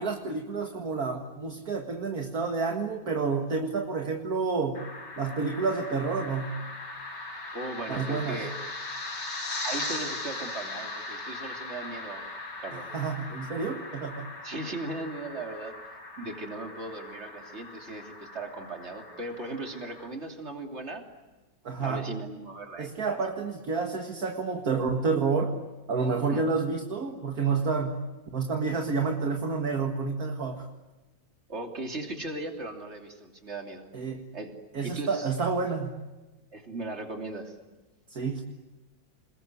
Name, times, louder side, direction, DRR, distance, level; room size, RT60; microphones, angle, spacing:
voice 1, 0.0-4.8 5.2-6.6 7.9-8.4 12.9-14.3 21.6-22.1 22.8-25.6 25.9-28.0 28.3-30.7 33.9-34.2 34.7-36.0 38.1-38.4, right 4 dB, 55° right, 3 dB, 2.2 m, -29 dB
sound 1, 4.7-20.1, left 2 dB, 65° left, 4.2 m, -39 dB
voice 2, 7.5-8.5 9.6-12.2 12.6-12.9 14.4-15.7 16.2-21.0 21.8-23.2 26.2-26.4 31.5-33.9 34.3-34.6 34.8-35.3 36.5-37.6, right 2 dB, 35° right, 3 dB, 3.2 m, -38 dB
28.0 x 21.0 x 9.6 m, 1.1 s
omnidirectional pair, 2.0 m